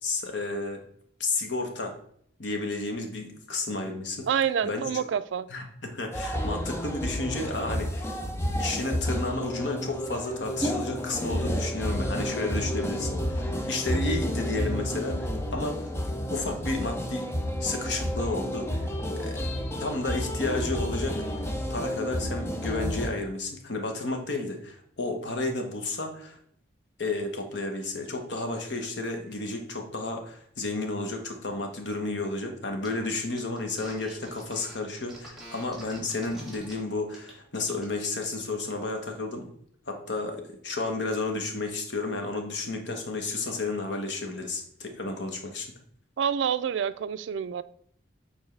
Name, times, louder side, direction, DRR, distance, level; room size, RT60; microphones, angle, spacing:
voice 1, 0.0-0.8 1.2-1.9 2.4-4.3 4.6-4.9 5.5-8.1 8.6-15.8 16.3-17.3 17.6-18.9 19.2-19.5 19.8-21.2 21.7-26.4 27.0-39.5 39.9-45.7, left 2 dB, 65° left, 1.1 m, -32 dB
voice 2, 4.3-5.5 46.2-47.6, right 8 dB, 75° right, 0.3 m, -27 dB
sound 1, 6.1-23.1, equal, 15° left, 0.6 m, -31 dB
sound 2, 32.8-32.9 33.1-36.7 37.1-37.3 37.6-38.2, right 1 dB, ahead, 1.6 m, -46 dB
7.0 x 4.4 x 3.3 m
head